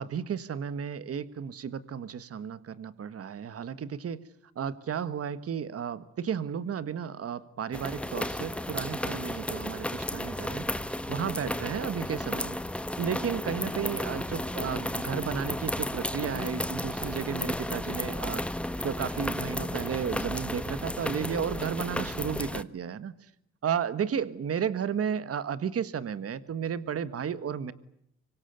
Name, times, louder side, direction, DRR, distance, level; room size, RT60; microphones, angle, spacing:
voice 1, 0.0-4.2 4.6-10.7 11.1-12.6 13.0-18.4 18.8-23.1 23.6-27.7, right 7 dB, 50° right, 14 dB, 1.6 m, -33 dB
sound 1, 7.7-22.6, left 1 dB, 5° left, 1.3 m, -33 dB
26.0 x 23.5 x 9.4 m, 0.71 s
cardioid pair, 90°, 30 cm